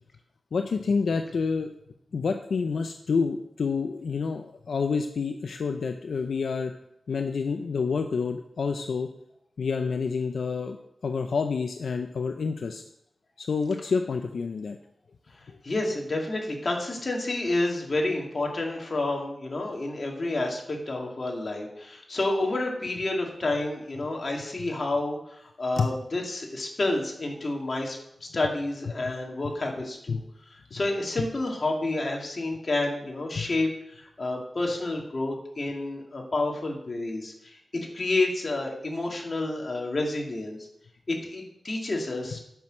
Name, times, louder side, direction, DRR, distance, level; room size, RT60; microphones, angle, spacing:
voice 1, 0.5-1.7 2.1-6.7 7.1-9.1 9.6-10.8 11.0-12.8 13.4-14.8 25.8-25.9 30.1-30.2 30.7-30.8 33.4-33.5, left 5 dB, 80° left, 6 dB, 0.6 m, -28 dB
voice 2, 15.6-30.2 30.5-37.6 37.9-40.6 41.1-42.4, left 2 dB, 45° left, 0 dB, 2.4 m, -29 dB
9.1 x 6.1 x 6.4 m, 0.77 s
wide cardioid pair, 75°, 0 cm